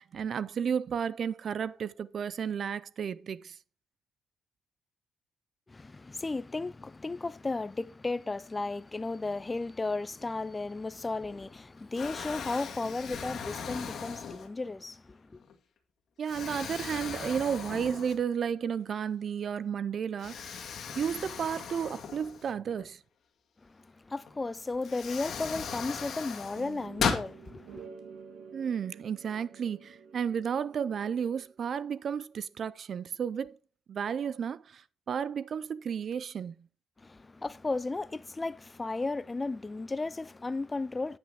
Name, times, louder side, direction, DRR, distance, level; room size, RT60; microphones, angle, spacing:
voice 1, 0.0-3.6 16.2-20.6 21.0-23.0 28.5-33.6 33.9-36.5, right 7 dB, 55° right, 0.4 m, -33 dB
voice 2, 5.7-15.4 23.6-27.9 37.0-41.2, left 3 dB, 20° left, 0.4 m, -35 dB
Explosion, 11.2-11.6 11.9-14.8 15.4-15.5 16.2-18.5 18.9-19.0 20.2-22.8 24.3-24.4 24.8-27.3, left 6 dB, 60° left, 1.7 m, -37 dB
sound 1, 26.6-31.7, right 6 dB, 75° right, 1.5 m, -50 dB
8.2 x 7.8 x 3.5 m
cardioid pair, 90°, 0 cm